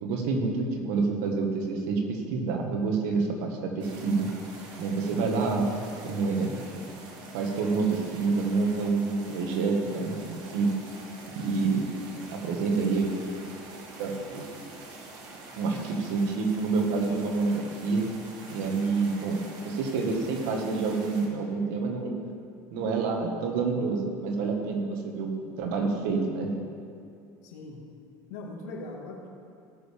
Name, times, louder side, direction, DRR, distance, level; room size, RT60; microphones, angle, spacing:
voice 1, 0.0-4.3 4.8-5.7 6.0-6.6 7.3-10.7 11.4-11.9 12.3-13.1 14.0-14.5 15.6-18.1 18.5-22.1 22.7-25.3 25.6-26.5, right 4 dB, 75° right, 1 dB, 1.8 m, -28 dB
sound 1, 3.8-21.3, right 2 dB, 55° right, 2.2 m, -46 dB
voice 2, 27.4-27.9 28.3-29.3, left 2 dB, 85° left, 0 dB, 2.0 m, -40 dB
17.5 x 6.7 x 3.7 m, 2.4 s
supercardioid pair, 115°, 9 cm